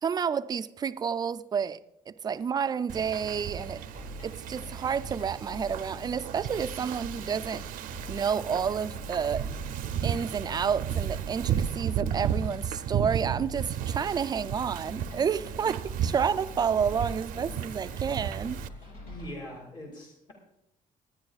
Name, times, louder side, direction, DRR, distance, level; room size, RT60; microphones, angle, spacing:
voice 1, 0.0-1.8 2.1-3.8 4.2-7.6 8.1-9.5 10.0-18.6, right 7 dB, 30° right, 0.4 m, -30 dB
Wind / Ocean, 2.9-18.7, right 9 dB, 75° right, 0.6 m, -34 dB
sound 1, 3.4-19.3, left 2 dB, 85° left, 5.0 m, -46 dB
voice 2, 19.1-20.3, equal, 35° left, 2.1 m, -42 dB
22.0 x 9.6 x 2.4 m
cardioid pair, 145°, 14 cm